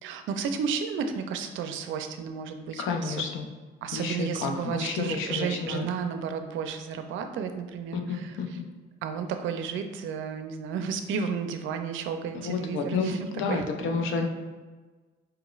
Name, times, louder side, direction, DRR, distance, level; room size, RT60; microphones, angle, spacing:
voice 1, 0.0-3.2 3.8-8.6 9.0-13.6, right 6 dB, 80° right, 7 dB, 0.4 m, -32 dB
voice 2, 2.8-3.5 3.9-5.9 7.9-8.6 12.3-14.3, left 4 dB, 85° left, 4 dB, 0.5 m, -30 dB
4.7 x 3.0 x 2.3 m, 1.3 s
cardioid pair, 90°, 20 cm